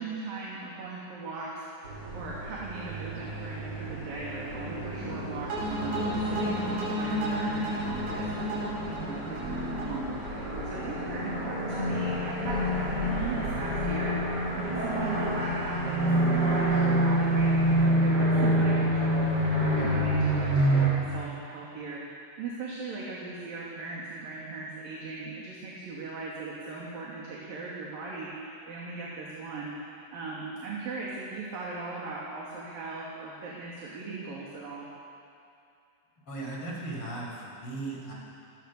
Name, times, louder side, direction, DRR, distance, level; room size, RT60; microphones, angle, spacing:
voice 1, 0.0-34.9, right 3 dB, 55° right, -5 dB, 4.4 m, -39 dB
sound 1, 1.8-20.9, right 1 dB, 25° right, 5.5 m, -28 dB
sound 2, 5.5-10.6, equal, 80° right, 7.8 m, -32 dB
voice 2, 36.2-38.1, right 2 dB, 30° left, -3 dB, 6.6 m, -37 dB
27.0 x 21.5 x 7.0 m, 2.5 s
omnidirectional pair, 4.9 m